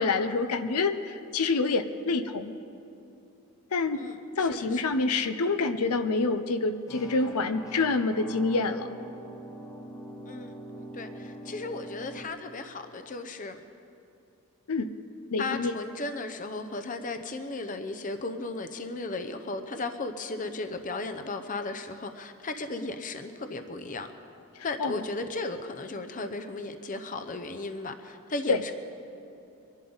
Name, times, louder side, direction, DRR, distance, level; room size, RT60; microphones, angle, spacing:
voice 1, 0.0-2.5 3.7-4.1 4.4-8.9 14.7-14.9 15.3-15.8 24.6-25.0 28.5-28.6, left 3 dB, 80° left, 10 dB, 0.7 m, -27 dB
voice 2, 3.9-4.9 10.3-13.6 15.4-24.1 24.6-28.7, left 3 dB, 35° left, 8 dB, 0.7 m, -36 dB
sound 1, 6.9-12.3, right 1 dB, 15° left, 0.9 m, -43 dB
23.5 x 11.5 x 4.0 m, 2.7 s
head